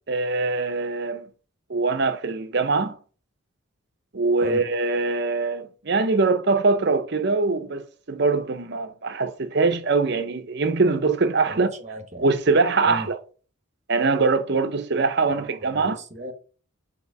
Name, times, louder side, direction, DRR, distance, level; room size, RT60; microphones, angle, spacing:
voice 1, 0.1-1.2 1.7-3.0 4.1-11.7 12.2-13.2 13.9-16.0, right 3 dB, 55° right, 0.7 m, -23 dB
voice 2, 11.5-12.3 12.8-13.1 15.4-16.3, equal, 35° right, 1.0 m, -36 dB
6.8 x 2.9 x 4.7 m
head